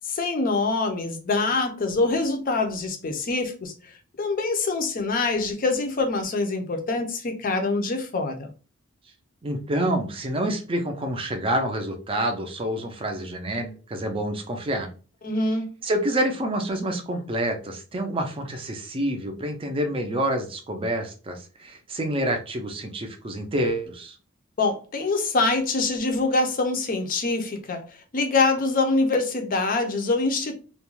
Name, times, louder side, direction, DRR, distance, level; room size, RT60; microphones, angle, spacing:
voice 1, 0.0-3.7 4.2-8.5 15.2-15.7 24.6-30.5, left 3 dB, 40° left, 0.5 m, -25 dB
voice 2, 9.4-14.9 15.8-24.2, right 1 dB, 25° right, 0.4 m, -27 dB
2.3 x 2.2 x 3.0 m
head